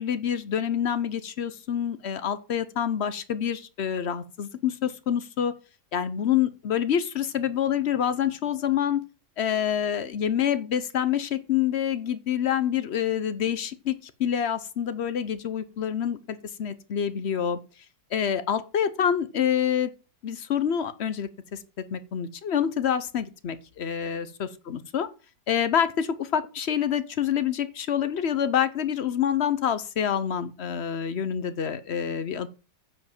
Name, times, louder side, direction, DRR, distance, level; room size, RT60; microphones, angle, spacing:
voice 1, 0.0-5.5 5.9-9.0 9.4-17.6 18.1-19.9 20.2-21.6 21.9-25.1 25.5-32.5, left 9 dB, 60° left, 13 dB, 0.7 m, -27 dB
9.5 x 5.1 x 7.2 m, 0.33 s
omnidirectional pair, 2.0 m